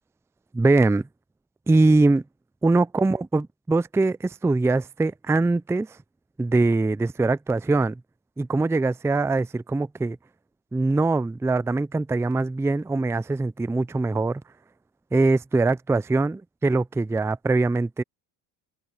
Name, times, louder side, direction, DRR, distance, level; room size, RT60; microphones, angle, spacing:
voice 1, 0.5-1.1 1.7-2.2 2.6-6.0 6.4-8.0 8.4-10.2 10.7-14.4 15.1-18.0, right 3 dB, 5° right, 0.5 m, -22 dB
open air
supercardioid pair, 70°, 48 cm